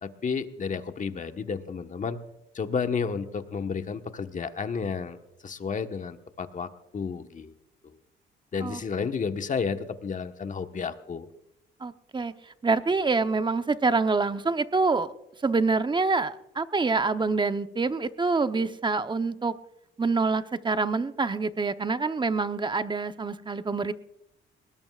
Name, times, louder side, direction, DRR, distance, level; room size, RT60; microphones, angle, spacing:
voice 1, 0.0-2.2 2.5-7.5 7.8-7.9 8.5-11.3, left 5 dB, 40° left, 7 dB, 1.3 m, -32 dB
voice 2, 11.8-15.1 15.4-19.5 20.0-23.9, right 4 dB, 25° right, 10 dB, 0.9 m, -26 dB
21.0 x 20.0 x 2.4 m, 0.88 s
cardioid pair, 90°, 20 cm